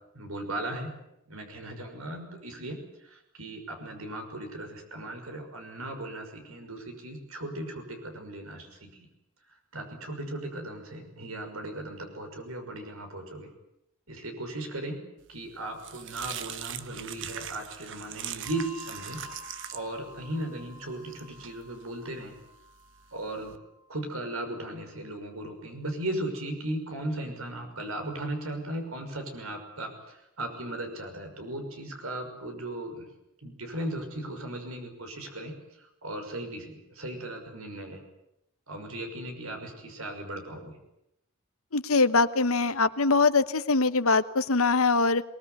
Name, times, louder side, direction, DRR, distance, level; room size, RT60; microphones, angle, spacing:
voice 1, 0.1-0.9 1.3-8.9 9.7-13.5 14.1-15.0 15.3-19.2 19.7-22.4 23.1-23.6 23.9-33.1 33.4-35.5 35.8-38.0 38.7-40.8, right 1 dB, 85° right, 5 dB, 6.0 m, -37 dB
sound 1, 15.3-23.6, right 10 dB, 65° right, 1.2 m, -42 dB
Bell, 18.4-25.3, left 3 dB, 20° right, 5.6 m, -51 dB
voice 2, 41.7-45.2, left 3 dB, 85° left, 12 dB, 1.1 m, -23 dB
23.0 x 20.0 x 9.6 m, 0.84 s
head